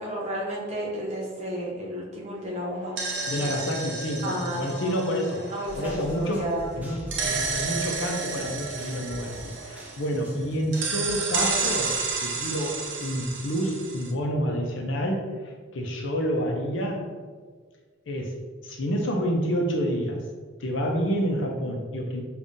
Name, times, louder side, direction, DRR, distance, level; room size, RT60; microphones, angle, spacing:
voice 1, 0.0-3.6 4.2-5.0 5.5-6.7, equal, 35° right, -4 dB, 0.9 m, -32 dB
sound 1, 2.7-6.4 7.1-10.3 10.7-14.1, right 4 dB, 65° right, 0.6 m, -31 dB
voice 2, 3.3-5.4 5.8-12.0 12.2-17.1 18.1-18.4 18.6-20.2 20.6-22.2, equal, 70° left, 1 dB, 0.5 m, -28 dB
sound 2, 5.6-11.1, equal, 10° right, 0.6 m, -44 dB
5.2 x 2.4 x 2.6 m, 1.5 s
head